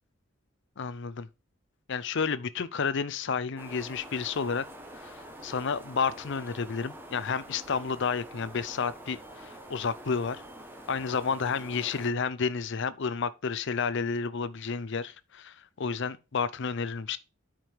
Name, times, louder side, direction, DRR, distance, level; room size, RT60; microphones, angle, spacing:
voice 1, 0.8-1.3 1.9-4.6 5.0-10.4 10.9-17.2, left 5 dB, 55° left, 0.6 m, -31 dB
sound 1, 3.6-12.1, right 1 dB, 10° right, 1.3 m, -46 dB
9.2 x 5.1 x 4.6 m
head